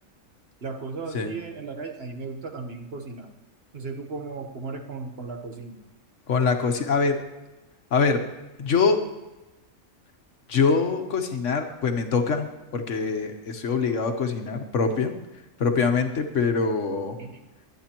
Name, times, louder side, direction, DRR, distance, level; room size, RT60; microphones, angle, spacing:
voice 1, 0.6-3.3 3.7-5.8 17.2-17.3, right 4 dB, 50° right, 4 dB, 1.3 m, -36 dB
voice 2, 6.3-7.2 7.9-8.2 8.6-9.0 10.5-15.1 15.6-17.2, left 5 dB, 70° left, 6 dB, 1.4 m, -24 dB
22.5 x 9.2 x 3.0 m, 1.1 s
omnidirectional pair, 1.3 m